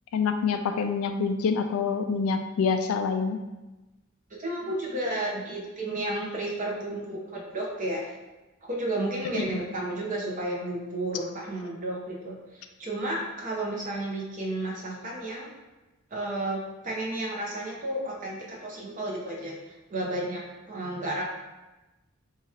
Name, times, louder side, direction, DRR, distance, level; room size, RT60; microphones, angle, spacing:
voice 1, 0.1-3.4, left 5 dB, 90° left, 8 dB, 0.3 m, -26 dB
voice 2, 4.4-8.1 8.6-15.5 16.1-21.2, right 1 dB, 40° right, -3 dB, 0.8 m, -32 dB
2.9 x 2.4 x 4.2 m, 1.1 s
head